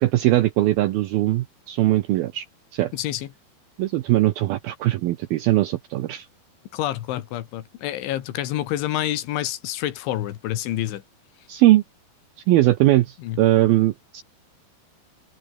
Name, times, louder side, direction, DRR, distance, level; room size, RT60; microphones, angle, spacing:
voice 1, 0.0-2.5 2.7-2.9 3.8-6.3 11.5-11.8 12.5-14.2, right 16 dB, 80° right, 2.2 m, -20 dB
voice 2, 2.9-3.3 6.7-11.0 13.2-13.4, left 13 dB, 85° left, 4.1 m, -28 dB
open air
omnidirectional pair, 5.4 m